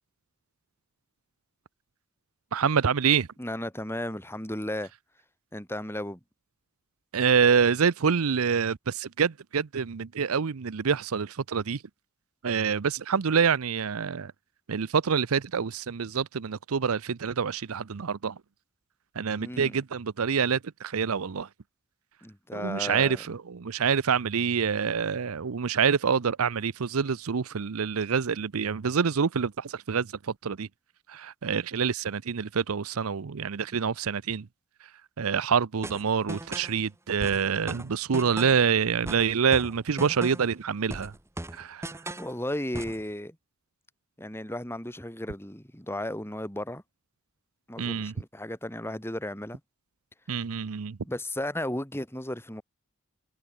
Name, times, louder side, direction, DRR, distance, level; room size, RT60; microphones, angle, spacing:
voice 1, 2.5-3.3 7.1-11.8 12.4-14.3 14.7-18.4 19.2-21.5 22.5-30.1 30.4-30.7 31.1-34.5 35.2-41.1 41.5-41.9 47.8-48.1 50.3-51.0, right 6 dB, 80° right, 0.6 m, -26 dB
voice 2, 3.4-4.9 5.5-6.2 19.4-19.8 22.2-23.2 42.2-43.4 44.2-46.8 47.7-49.6 51.0-52.6, left 1 dB, 10° left, 4.1 m, -34 dB
sound 1, 35.8-36.8 37.2-38.7 39.1-40.6 40.9-42.3 42.7-43.0, right 1 dB, 10° right, 1.2 m, -38 dB
head